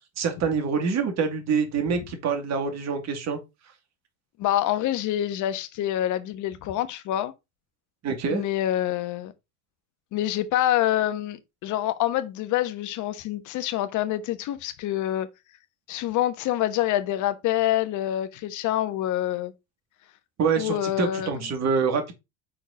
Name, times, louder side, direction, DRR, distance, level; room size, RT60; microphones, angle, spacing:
voice 1, 0.2-3.4 8.0-8.4 20.4-22.1, right 5 dB, 45° right, 2.4 m, -26 dB
voice 2, 4.4-7.3 8.3-9.3 10.1-15.3 15.9-19.5 20.6-21.3, left 13 dB, 55° left, 1.2 m, -26 dB
6.0 x 4.5 x 5.0 m
hypercardioid pair, 90°, 37 cm